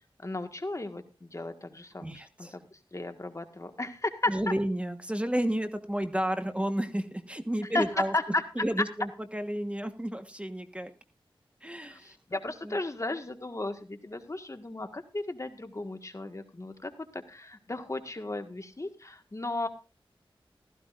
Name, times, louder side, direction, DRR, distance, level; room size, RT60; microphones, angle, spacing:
voice 1, 0.2-2.6 2.9-4.3 7.7-7.8 8.1-8.4 11.8-19.7, left 2 dB, 35° left, 7 dB, 1.6 m, -35 dB
voice 2, 2.0-2.6 4.3-8.1 8.5-10.9 11.6-12.2 12.6-12.8, right 1 dB, 15° right, 8 dB, 1.3 m, -31 dB
15.5 x 14.5 x 2.5 m, 0.31 s
cardioid pair, 50°, 9 cm